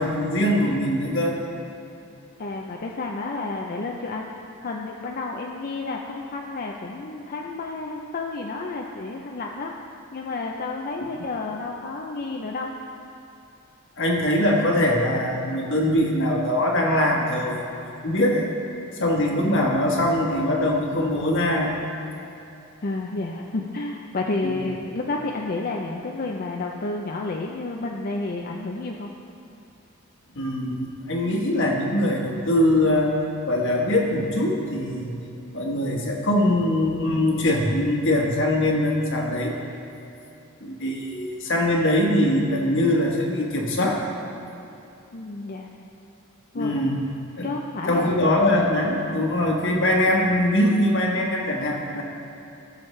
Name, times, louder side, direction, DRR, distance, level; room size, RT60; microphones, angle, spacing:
voice 1, 0.0-1.3 14.0-17.7 18.0-18.4 19.0-21.7 24.4-24.5 30.3-33.1 33.5-35.1 35.5-39.5 40.6-44.0 46.5-47.0 47.4-47.5 47.9-52.0, left 1 dB, 60° left, -1 dB, 1.5 m, -22 dB
voice 2, 2.4-4.3 4.6-9.7 10.1-12.7 22.8-29.1 45.1-45.7 46.5-46.7 47.4-48.2, left 3 dB, 45° left, 0 dB, 0.5 m, -30 dB
16.0 x 7.0 x 3.3 m, 2.7 s
head